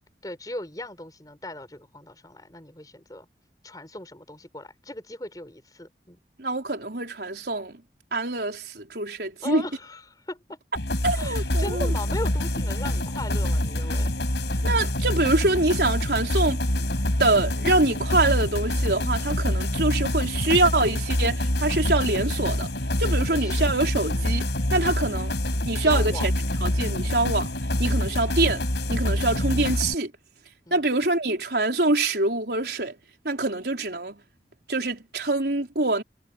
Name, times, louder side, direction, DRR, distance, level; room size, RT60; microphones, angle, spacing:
voice 1, 0.2-3.3 3.6-6.2 9.4-10.6 11.1-14.1 14.5-14.6 23.1-23.7 25.8-26.3 29.1-29.5 30.7-30.9, left 1 dB, 20° left, 4.1 m, -38 dB
voice 2, 6.4-7.8 8.1-9.6 11.0-11.9 14.6-16.6 17.2-22.7 23.0-25.3 25.7-26.3 26.6-27.5 27.8-28.6 28.9-30.1 30.7-33.0 33.2-34.2 34.7-36.0, right 2 dB, 70° right, 4.3 m, -25 dB
sound 1, 10.8-30.0, left 1 dB, 80° left, 4.8 m, -26 dB
head